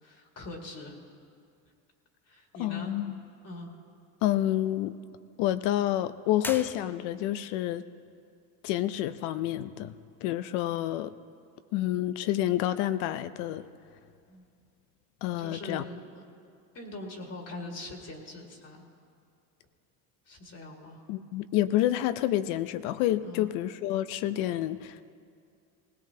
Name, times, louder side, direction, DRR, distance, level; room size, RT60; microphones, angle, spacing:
voice 1, 0.0-1.0 2.3-2.9 3.4-3.7 14.3-14.4 15.4-16.2 16.7-18.9 20.3-21.0 23.2-23.5, left 2 dB, 40° left, 1 dB, 2.0 m, -42 dB
voice 2, 2.6-3.2 4.2-4.9 5.4-7.8 8.6-11.1 11.7-13.6 15.2-15.8 21.1-25.1, left 13 dB, 85° left, 13 dB, 0.6 m, -29 dB
sound 1, 6.4-7.4, left 1 dB, 5° left, 0.3 m, -41 dB
18.5 x 17.0 x 2.8 m, 2.3 s
cardioid pair, 115°, 40 cm